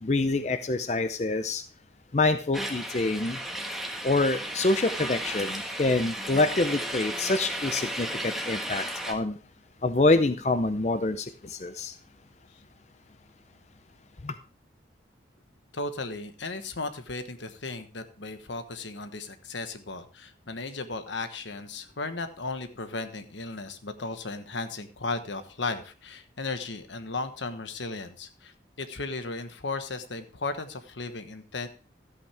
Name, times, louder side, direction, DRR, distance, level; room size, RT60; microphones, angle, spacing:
voice 1, 0.0-1.6 2.1-3.4 4.0-9.4 9.8-11.9 14.2-14.3, left 2 dB, 35° left, 9 dB, 0.6 m, -26 dB
sound 1, 2.5-9.1, right 1 dB, ahead, 1.3 m, -34 dB
voice 2, 15.7-31.7, left 3 dB, 80° left, 9 dB, 1.3 m, -35 dB
13.0 x 8.7 x 3.4 m, 0.36 s
head